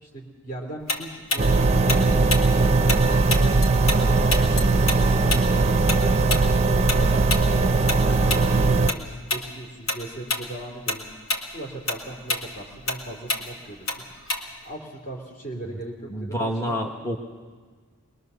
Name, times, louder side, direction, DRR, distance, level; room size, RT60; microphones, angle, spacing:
voice 1, 0.0-4.8 5.5-11.1 11.5-14.1 14.6-16.8, right 2 dB, 40° left, 0 dB, 2.7 m, -38 dB
Tick-tock, 0.9-4.0 4.3-9.0 9.3-9.5 9.9-10.5 10.7-14.7, left 2 dB, 70° left, 2.4 m, -28 dB
sound 1, 1.4-8.9, right 3 dB, 30° right, 0.6 m, -19 dB
voice 2, 16.1-17.2, equal, 15° left, 1 dB, 1.2 m, -28 dB
22.0 x 22.0 x 6.8 m, 1.5 s
head